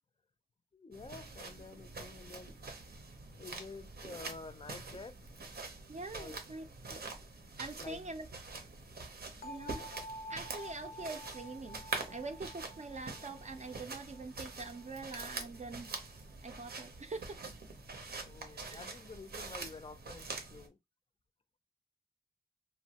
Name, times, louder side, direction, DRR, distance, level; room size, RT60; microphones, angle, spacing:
voice 1, 0.7-2.5 3.4-5.2 6.1-6.4 6.8-7.3 7.8-8.1 18.1-20.8, left 3 dB, 35° left, 0.4 m, -50 dB
sound 1, 0.9-20.7, right 3 dB, 80° right, 0.7 m, -45 dB
voice 2, 5.9-6.6 7.6-8.3 9.4-9.9 10.3-15.9 16.4-17.4 18.5-18.8, right 3 dB, 45° right, 0.4 m, -44 dB
sound 2, 9.4-15.3, left 1 dB, 90° left, 0.6 m, -50 dB
3.0 x 2.1 x 2.8 m
wide cardioid pair, 60°, 16 cm